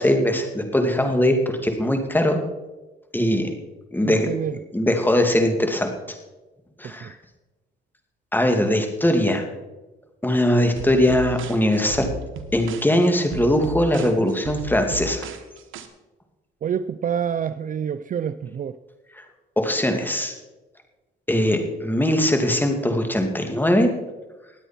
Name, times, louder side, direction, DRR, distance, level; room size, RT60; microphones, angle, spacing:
voice 1, 0.0-1.4 1.6-2.4 3.1-3.5 3.9-4.3 4.7-5.9 6.8-7.1 8.3-9.4 10.2-12.1 12.5-15.3 19.6-20.3 21.3-23.9, left 1 dB, 10° left, 2.3 m, -20 dB
voice 2, 4.0-4.6 6.8-7.1 16.6-18.8, right 8 dB, 40° right, 0.5 m, -27 dB
sound 1, 10.8-15.9, right 3 dB, 80° right, 1.3 m, -35 dB
20.0 x 8.1 x 4.4 m
cardioid pair, 90°, 20 cm